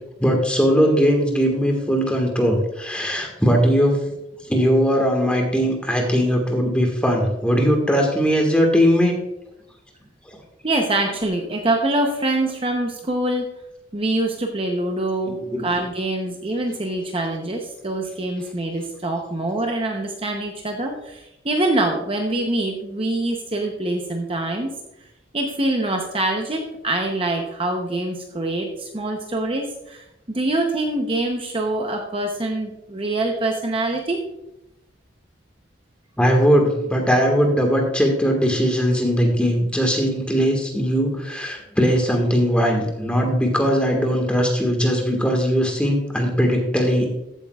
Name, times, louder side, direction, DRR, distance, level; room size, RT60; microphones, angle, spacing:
voice 1, 0.2-4.0 4.5-9.1 15.2-15.7 36.2-47.1, equal, 5° left, 1 dB, 1.6 m, -19 dB
voice 2, 10.6-13.5 13.9-15.4 15.6-24.7 25.3-34.2, right 2 dB, 30° right, 2 dB, 0.8 m, -24 dB
14.5 x 8.4 x 2.4 m, 0.89 s
head